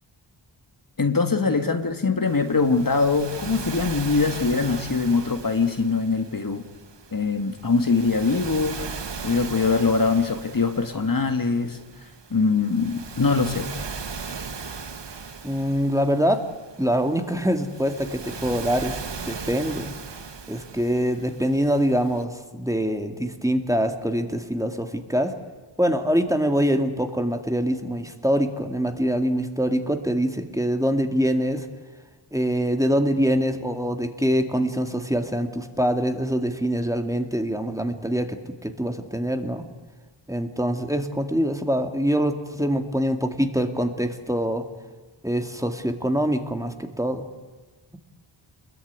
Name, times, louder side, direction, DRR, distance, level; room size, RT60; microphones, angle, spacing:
voice 1, 1.0-6.6 7.1-8.9 9.2-11.8 12.3-13.7, left 4 dB, 45° left, 7 dB, 1.9 m, -22 dB
Waves surf, 2.3-22.2, right 5 dB, 60° right, 1.7 m, -38 dB
voice 2, 15.4-16.4 16.8-19.9 20.5-25.3 25.8-31.7 32.3-39.6 40.3-44.7 45.2-47.3, equal, 5° right, 6 dB, 2.2 m, -24 dB
27.0 x 21.5 x 9.6 m, 1.3 s
wide cardioid pair, 90°, 48 cm